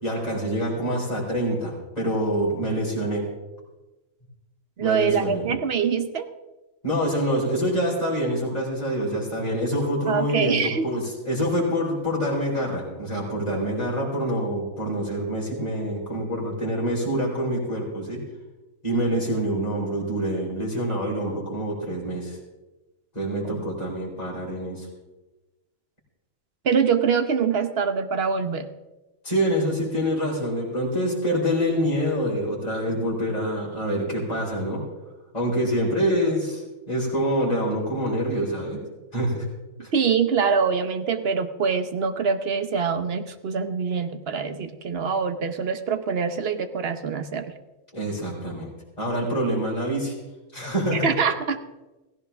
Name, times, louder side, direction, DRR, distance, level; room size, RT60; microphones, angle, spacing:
voice 1, 0.0-3.2 4.8-5.5 6.8-18.2 18.8-22.4 23.1-24.9 29.2-34.9 35.3-38.8 39.1-39.5 39.8-39.9 47.9-50.1 50.5-51.1, equal, 30° left, -6 dB, 4.4 m, -26 dB
voice 2, 4.8-6.3 10.1-10.9 23.4-23.7 26.6-28.7 39.9-47.5 50.9-51.6, right 6 dB, 50° right, 9 dB, 1.2 m, -24 dB
16.5 x 16.0 x 3.5 m, 1.1 s
omnidirectional pair, 1.4 m